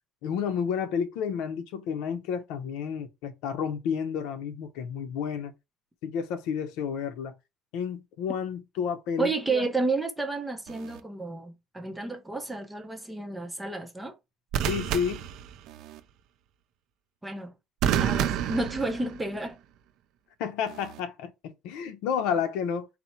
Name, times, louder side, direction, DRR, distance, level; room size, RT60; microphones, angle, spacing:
voice 1, 0.2-5.5 6.0-7.3 7.7-9.7 14.6-15.3 20.4-22.9, left 7 dB, 80° left, 0.7 m, -31 dB
voice 2, 9.2-14.1 17.2-17.5 18.0-19.6, right 3 dB, 5° right, 0.5 m, -31 dB
sound 1, 10.7-11.0 14.5-16.0 17.8-19.5 20.7-21.0, right 10 dB, 65° right, 0.4 m, -30 dB
4.2 x 2.0 x 4.2 m
cardioid pair, 165°, 0 cm